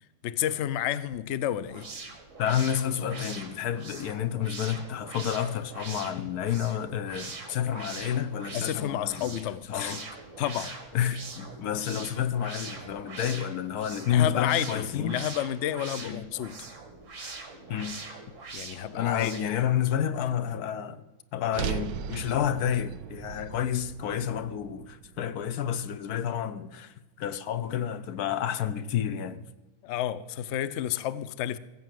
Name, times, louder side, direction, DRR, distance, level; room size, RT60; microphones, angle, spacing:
voice 1, 0.2-1.9 8.5-10.0 10.4-10.7 14.1-16.7 18.5-19.3 29.8-31.6, left 11 dB, 60° left, 0.8 m, -30 dB
sound 1, 1.6-19.6, right 3 dB, 55° right, 2.2 m, -43 dB
voice 2, 2.4-9.4 9.7-10.0 10.6-15.2 16.0-16.3 17.2-17.4 17.7-18.0 18.9-21.0 21.3-29.4, left 9 dB, 90° left, 1.3 m, -30 dB
sound 2, 21.5-25.8, right 11 dB, 80° right, 1.1 m, -38 dB
15.5 x 7.7 x 7.6 m
omnidirectional pair, 1.6 m